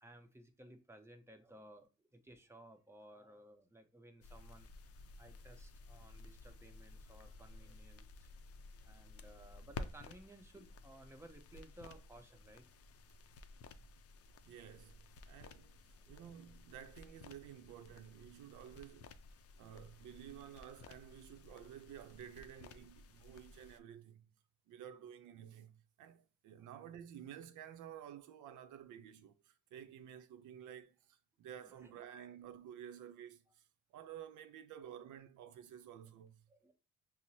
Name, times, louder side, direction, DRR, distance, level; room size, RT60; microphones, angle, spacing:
voice 1, 0.0-4.7 5.2-8.3 8.8-12.6 15.9-16.3 26.6-26.7 31.6-32.0 36.5-36.7, right 1 dB, 10° right, 0.7 m, -58 dB
sound 1, 4.2-23.8, left 3 dB, 50° left, 0.5 m, -54 dB
voice 2, 14.5-19.1 19.6-24.3 24.7-33.6 33.9-36.4, right 9 dB, 80° right, 0.6 m, -53 dB
5.9 x 2.0 x 2.7 m
cardioid pair, 90°, 30 cm